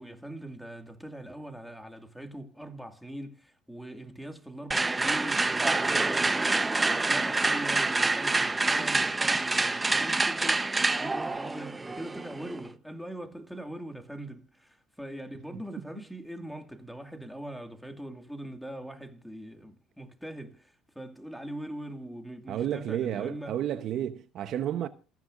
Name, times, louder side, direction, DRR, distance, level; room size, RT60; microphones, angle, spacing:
voice 1, 0.0-23.5, right 1 dB, ahead, 2.1 m, -42 dB
sound 1, 4.7-12.7, right 3 dB, 15° right, 0.9 m, -27 dB
voice 2, 22.5-24.9, right 10 dB, 55° right, 0.9 m, -31 dB
28.0 x 9.4 x 2.6 m
supercardioid pair, 100°, 0 cm